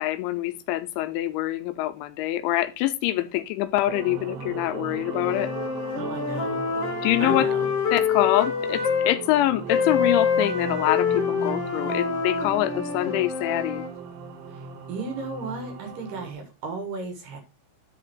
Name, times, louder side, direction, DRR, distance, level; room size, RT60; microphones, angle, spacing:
voice 1, 0.0-5.5 7.0-7.5 7.9-13.8, left 14 dB, 85° left, 9 dB, 2.8 m, -25 dB
sound 1, 3.9-16.3, right 6 dB, 80° right, 3.7 m, -37 dB
sound 2, 5.0-9.2 9.7-13.9, left 6 dB, 45° left, 2.0 m, -26 dB
voice 2, 5.9-6.6 7.2-7.7 14.5-17.4, right 3 dB, 60° right, 5 dB, 2.5 m, -35 dB
11.0 x 4.2 x 4.4 m, 0.28 s
omnidirectional pair, 5.6 m